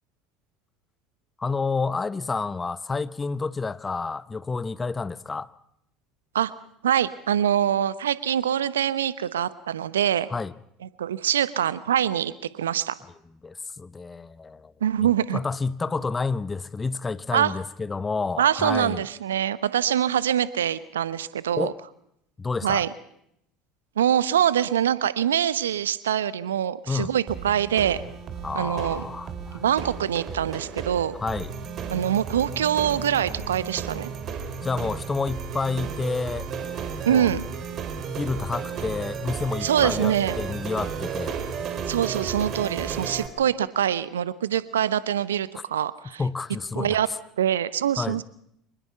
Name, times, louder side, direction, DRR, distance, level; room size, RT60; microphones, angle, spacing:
voice 1, 1.4-5.5 10.3-10.5 13.4-14.7 15.0-19.1 21.5-21.7 22.4-22.8 26.9-27.1 28.4-29.6 31.2-31.5 34.6-36.5 37.0-37.3 38.1-41.4 46.2-47.2 48.0-48.2, left 4 dB, 20° left, 0.9 m, -29 dB
voice 2, 6.8-10.3 11.0-13.0 14.8-15.4 17.3-17.5 18.4-21.7 22.6-22.9 24.0-28.0 28.5-29.0 29.5-31.1 31.9-34.1 37.0-37.5 39.6-40.4 41.9-46.2 46.8-47.1 47.4-48.2, right 10 dB, 75° right, 0.9 m, -24 dB
sound 1, 27.3-43.3, right 6 dB, 45° right, 3.3 m, -34 dB
25.0 x 20.5 x 5.6 m
figure-of-eight pair, 70°, 0 cm